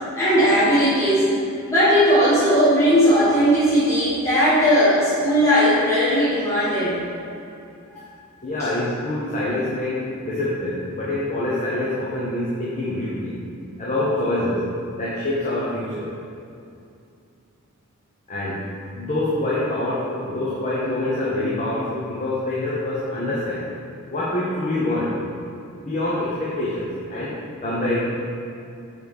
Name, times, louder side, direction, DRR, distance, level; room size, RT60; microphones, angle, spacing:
voice 1, 0.1-1.3 1.7-7.0, equal, 15° left, -11 dB, 1.3 m, -17 dB
voice 2, 8.4-13.4 13.8-14.6 14.9-16.1 18.3-18.6 18.9-23.6 24.1-25.1 25.8-27.4 27.6-28.0, left 1 dB, 35° left, -8 dB, 0.9 m, -25 dB
6.7 x 4.9 x 3.5 m, 2.5 s
head